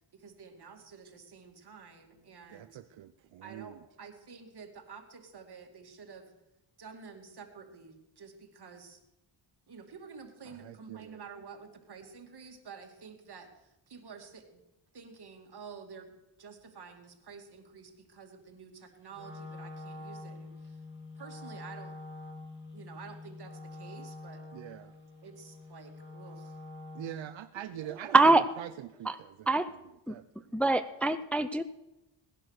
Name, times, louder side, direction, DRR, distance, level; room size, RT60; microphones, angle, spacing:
voice 1, 0.1-2.8 3.4-6.3 6.8-9.0 9.7-14.7 14.9-16.1 16.4-20.8 21.2-21.9 22.7-24.4 25.2-26.6, right 5 dB, 55° right, 4 dB, 2.6 m, -50 dB
voice 2, 2.5-3.8 10.5-11.2 24.5-24.9 26.9-28.2 28.6-29.5 30.1-30.7, right 12 dB, 80° right, 12 dB, 0.7 m, -44 dB
Wind instrument woodwind instrument, 19.1-27.3, left 2 dB, 25° left, 3.1 m, -46 dB
voice 3, 28.1-28.5 29.1-29.2 29.5-29.7 30.1-30.2 30.5-31.6, right 3 dB, 5° left, 11 dB, 0.5 m, -24 dB
19.0 x 10.5 x 6.6 m, 0.95 s
wide cardioid pair, 110°, 46 cm